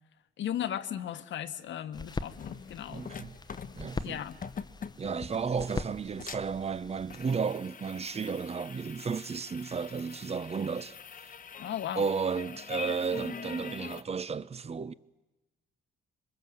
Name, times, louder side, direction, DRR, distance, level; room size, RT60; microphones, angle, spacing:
voice 1, 0.4-3.1 4.0-4.4 11.6-12.0, left 10 dB, 70° left, 1.3 m, -36 dB
sound 1, 1.9-7.3, left 3 dB, 20° left, 0.9 m, -42 dB
sound 2, 2.3-14.0, left 6 dB, 45° left, 1.0 m, -44 dB
voice 2, 2.9-3.4 3.8-4.2 5.0-11.0 12.0-14.9, right 5 dB, 30° right, 0.8 m, -33 dB
26.0 x 22.5 x 7.8 m
cardioid pair, 90°, 20 cm